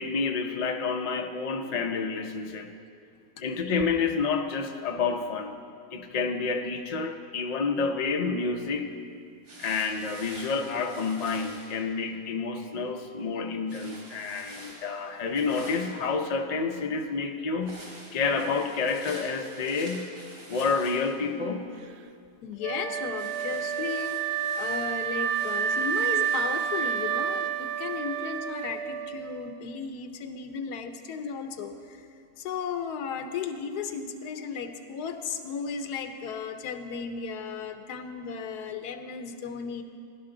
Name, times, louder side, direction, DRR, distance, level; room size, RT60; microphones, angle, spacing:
voice 1, 0.0-2.7 3.4-5.5 5.9-8.9 9.6-17.9 18.1-20.1 20.5-21.7, left 4 dB, 55° left, 4 dB, 0.4 m, -29 dB
sound 1, 9.4-11.7 13.7-16.0 17.6-21.3 23.1-26.9, right 1 dB, 60° right, 4.3 m, -47 dB
voice 2, 22.4-24.2 24.6-32.1 32.4-39.8, left 6 dB, 80° left, 8 dB, 1.3 m, -35 dB
Wind instrument woodwind instrument, 22.6-29.6, right 8 dB, 80° right, 0.6 m, -30 dB
16.0 x 11.5 x 3.8 m, 2.3 s
omnidirectional pair, 1.7 m